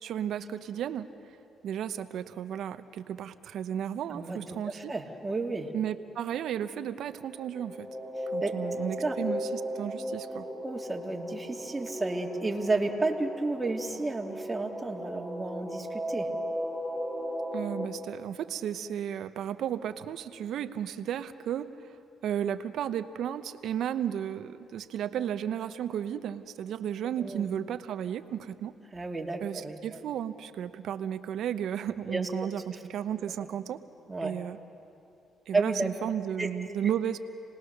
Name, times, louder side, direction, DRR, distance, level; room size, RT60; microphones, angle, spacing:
voice 1, 0.0-1.1 1.6-4.9 5.7-7.9 8.3-10.5 17.5-21.7 22.2-28.7 29.4-33.8 34.2-34.6 35.5-37.2, right 9 dB, 75° right, 11 dB, 0.9 m, -34 dB
voice 2, 4.7-5.7 8.4-8.5 9.0-9.2 10.6-16.3 27.2-27.5 28.9-29.8 32.1-32.5 34.1-34.3 35.5-35.9 36.4-36.5, right 3 dB, 20° right, 2 dB, 2.1 m, -32 dB
sound 1, 7.2-17.9, equal, 20° left, 4.8 m, -36 dB
28.0 x 19.5 x 6.6 m, 2.8 s
cardioid pair, 90°, 0 cm